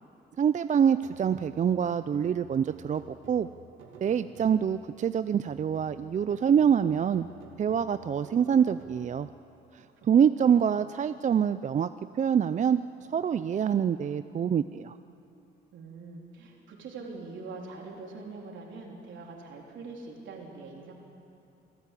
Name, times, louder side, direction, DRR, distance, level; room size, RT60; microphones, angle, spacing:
voice 1, 0.4-3.5 4.0-7.3 7.6-9.3 10.0-11.9 12.1-12.8 13.1-15.0, right 8 dB, 40° right, 12 dB, 0.4 m, -25 dB
sound 1, 1.0-4.9 5.5-9.3, right 3 dB, 85° right, 2.5 m, -52 dB
voice 2, 10.4-10.7 15.7-20.9, right 3 dB, 70° right, 0 dB, 3.7 m, -43 dB
26.0 x 13.0 x 8.4 m, 2.7 s
cardioid pair, 90°, 20 cm